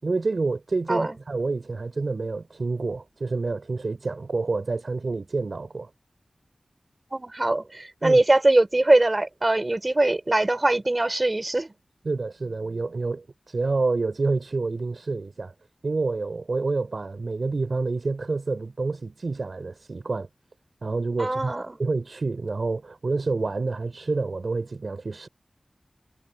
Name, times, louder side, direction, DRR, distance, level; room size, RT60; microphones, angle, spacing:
voice 1, 0.0-5.9 8.0-8.2 12.0-15.5 15.8-20.3 20.8-21.5 21.8-25.3, right 3 dB, 70° right, 4.0 m, -28 dB
voice 2, 7.1-11.7 21.2-21.8, right 2 dB, 35° right, 5.8 m, -22 dB
wide cardioid pair, 50°, 0 cm